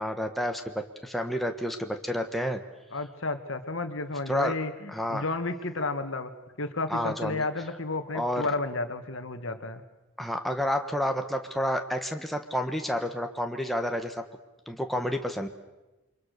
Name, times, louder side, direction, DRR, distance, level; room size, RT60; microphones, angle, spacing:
voice 1, 0.0-2.6 4.3-4.5 4.9-5.2 6.9-7.4 8.1-8.5 10.2-14.1 14.7-15.5, equal, ahead, 4 dB, 1.3 m, -30 dB
voice 2, 2.9-6.3 6.6-9.8, left 3 dB, 65° left, 8 dB, 1.8 m, -32 dB
29.0 x 24.5 x 6.7 m, 1.1 s
head